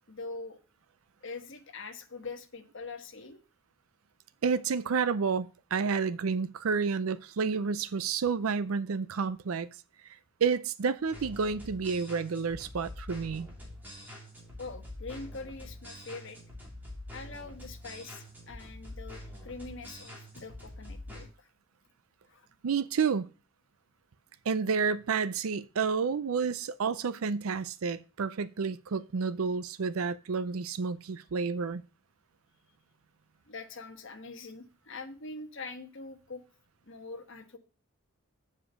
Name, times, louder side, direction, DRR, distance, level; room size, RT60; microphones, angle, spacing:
voice 1, 0.1-0.6 1.2-3.4 14.6-16.4 17.1-21.5 22.3-22.5 33.5-36.4 36.9-37.6, left 3 dB, 60° left, 1.3 m, -43 dB
voice 2, 4.4-9.7 10.4-13.5 22.6-23.3 24.5-31.8, right 5 dB, 90° right, 0.5 m, -30 dB
sound 1, 11.1-21.2, left 1 dB, 10° right, 2.9 m, -45 dB
7.4 x 5.3 x 6.9 m
head